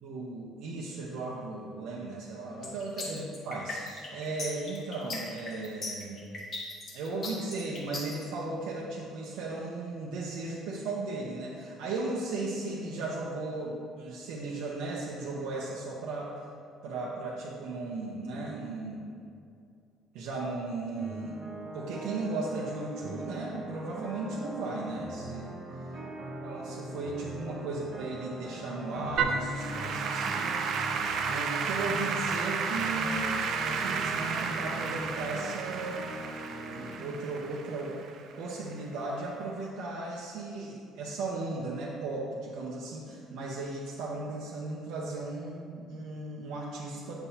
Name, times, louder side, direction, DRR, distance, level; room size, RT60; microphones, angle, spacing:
voice 1, 0.0-6.2 6.9-16.4 16.8-19.2 20.1-25.6 26.4-30.6 31.3-33.4 33.6-36.0 36.7-38.0 38.4-47.1, right 3 dB, 70° right, -4 dB, 0.9 m, -36 dB
sound 1, 2.6-8.2, left 3 dB, 30° left, 1.6 m, -38 dB
sound 2, 21.0-36.9, right 1 dB, 30° right, 1.4 m, -41 dB
Applause / Keyboard (musical), 29.2-38.5, right 5 dB, 50° right, 0.5 m, -32 dB
9.2 x 6.8 x 2.9 m, 2.4 s
cardioid pair, 160°, 0 cm